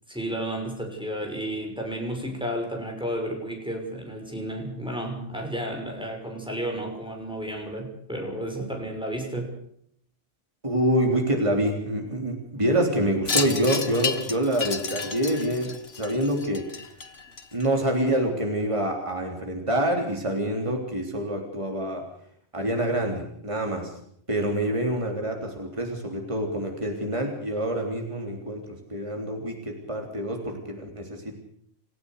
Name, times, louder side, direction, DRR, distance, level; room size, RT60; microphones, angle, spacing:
voice 1, 0.1-9.5, right 1 dB, 5° right, 1 dB, 6.2 m, -32 dB
voice 2, 10.6-16.7 17.5-22.0 22.5-23.9 24.3-31.4, right 1 dB, 30° right, 2 dB, 3.7 m, -26 dB
Wind chime, 13.3-17.9, left 5 dB, 75° left, 1.8 m, -31 dB
29.0 x 15.5 x 6.7 m, 0.67 s
omnidirectional pair, 1.1 m